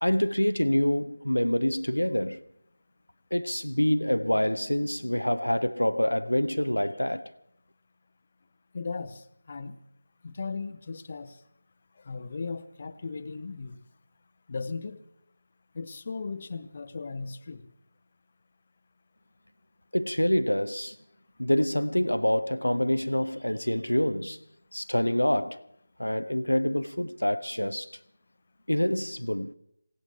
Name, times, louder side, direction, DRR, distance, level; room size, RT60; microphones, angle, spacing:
voice 1, 0.0-2.4 3.3-7.3 19.9-21.0 21.4-24.4 24.7-25.7 26.0-27.9 28.7-29.5, left 1 dB, 85° left, 0.6 m, -26 dB
voice 2, 8.7-9.8 10.2-11.4 12.0-13.8 14.5-15.0 15.7-17.6, left 4 dB, 35° left, 0.8 m, -37 dB
26.5 x 16.5 x 2.8 m
figure-of-eight pair, 160°, 0 cm